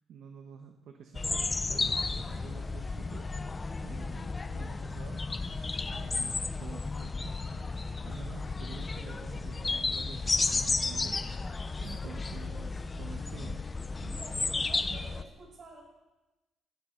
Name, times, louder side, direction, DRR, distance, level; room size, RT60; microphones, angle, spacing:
voice 1, 0.1-3.2 3.8-5.2 5.9-6.3 6.6-11.2 11.8-13.7 14.0-14.6 14.9-15.0, right 7 dB, 75° right, 4 dB, 1.2 m, -48 dB
sound 1, 1.1-15.2, left 3 dB, 25° left, 0.8 m, -33 dB
voice 2, 14.1-15.8, right 2 dB, 55° right, -2 dB, 7.0 m, -50 dB
17.0 x 12.5 x 5.2 m, 1.1 s
cardioid pair, 90°, 0 cm